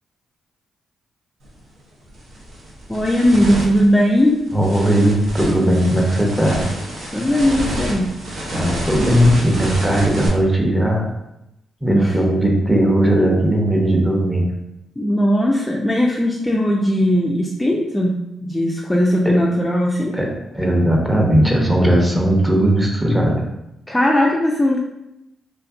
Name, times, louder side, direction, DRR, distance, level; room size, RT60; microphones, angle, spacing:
sound 1, 1.4-1.6 2.1-10.3, right 1 dB, 70° right, 0.7 m, -28 dB
voice 1, 2.9-4.4 7.1-8.2 11.9-12.2 15.0-20.2 23.9-24.8, equal, 15° left, -2 dB, 0.3 m, -18 dB
voice 2, 4.5-6.7 8.5-11.1 11.8-14.5 19.3-19.4 20.1-23.4, right 1 dB, 10° right, 0 dB, 0.7 m, -17 dB
2.5 x 2.5 x 2.4 m, 0.87 s
supercardioid pair, 50°, 0 cm